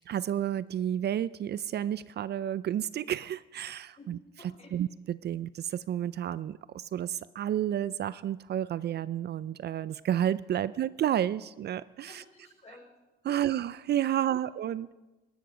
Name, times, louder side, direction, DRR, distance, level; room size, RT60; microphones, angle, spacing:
voice 1, 0.1-4.2 4.7-4.9 5.2-12.2 13.3-14.9, right 11 dB, 55° right, 18 dB, 0.5 m, -31 dB
voice 2, 4.0-4.7 12.1-12.9 13.3-13.5 14.1-14.4, left 2 dB, 35° left, -1 dB, 5.7 m, -53 dB
17.5 x 13.0 x 5.0 m, 1.1 s
cardioid pair, 90°, 20 cm